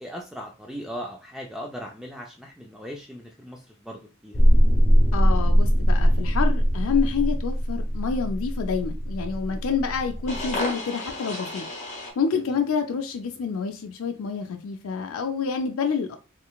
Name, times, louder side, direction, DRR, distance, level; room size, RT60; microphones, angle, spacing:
voice 1, 0.0-4.4 12.4-12.6, equal, ahead, 0.3 m, -38 dB
sound 1, 4.3-12.1, equal, 35° left, 1.6 m, -22 dB
voice 2, 5.1-11.7 12.2-16.2, left 6 dB, 90° left, 0.4 m, -28 dB
3.8 x 3.1 x 2.3 m
head